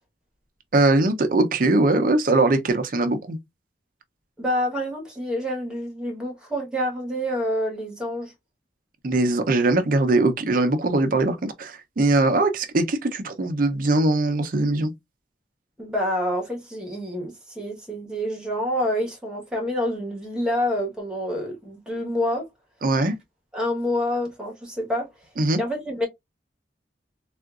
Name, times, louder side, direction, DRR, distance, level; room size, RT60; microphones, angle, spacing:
voice 1, 0.7-3.4 9.0-14.9 22.8-23.1 25.4-25.6, right 2 dB, 50° right, 0.5 m, -21 dB
voice 2, 4.4-8.3 15.8-22.5 23.5-25.1 25.6-26.1, left 1 dB, 5° right, 1.1 m, -27 dB
3.6 x 2.4 x 2.3 m
head